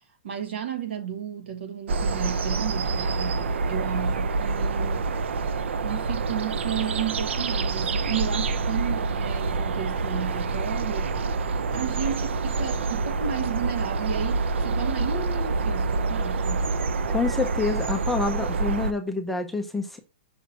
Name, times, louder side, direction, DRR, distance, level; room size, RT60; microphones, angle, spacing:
voice 1, 0.2-5.1 5.8-11.2 11.7-16.7, right 9 dB, 70° right, 1.6 m, -33 dB
sound 1, 1.9-18.9, right 3 dB, 90° right, 0.6 m, -27 dB
voice 2, 17.1-20.0, left 3 dB, ahead, 0.5 m, -27 dB
6.0 x 2.9 x 5.6 m
hypercardioid pair, 170°, 6 cm